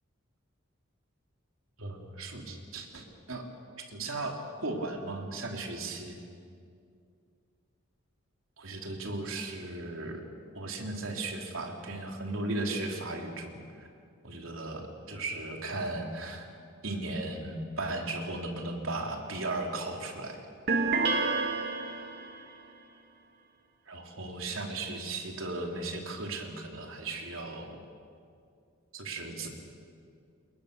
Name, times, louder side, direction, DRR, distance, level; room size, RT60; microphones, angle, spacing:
voice 1, 1.8-3.4 3.9-6.2 8.6-10.2 10.5-13.6 14.2-16.5 16.8-20.5 23.9-27.8 28.9-29.5, right 2 dB, 85° right, 2 dB, 3.3 m, -36 dB
sound 1, 20.7-22.4, right 3 dB, 55° right, 2.4 m, -29 dB
28.5 x 21.5 x 6.8 m, 2.4 s
head